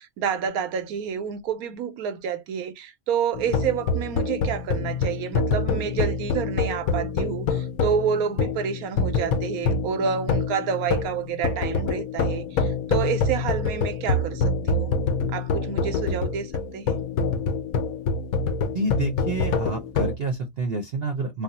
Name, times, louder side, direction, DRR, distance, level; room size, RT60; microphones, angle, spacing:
voice 1, 0.0-15.0 15.3-17.0, right 7 dB, 90° right, 1.1 m, -29 dB
sound 1, 3.3-20.2, left 4 dB, 80° left, 1.1 m, -26 dB
voice 2, 18.7-21.4, right 3 dB, 55° right, 0.8 m, -28 dB
3.3 x 2.0 x 2.8 m
omnidirectional pair, 1.5 m